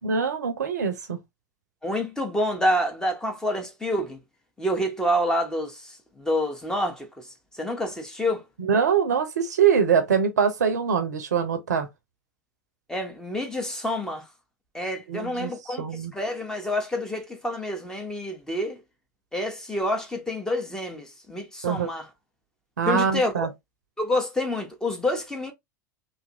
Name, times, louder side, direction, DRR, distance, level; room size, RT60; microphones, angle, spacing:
voice 1, 0.0-1.2 8.6-11.9 15.1-15.5 15.8-16.1 21.6-21.9 22.8-23.5, right 7 dB, 65° right, 0.6 m, -23 dB
voice 2, 1.8-4.2 4.6-7.3 7.5-8.4 12.9-14.2 14.7-15.8 16.1-18.8 19.3-22.1 22.9-23.5 24.0-25.5, left 1 dB, 5° left, 0.8 m, -28 dB
2.8 x 2.5 x 2.7 m
figure-of-eight pair, 85°, 10 cm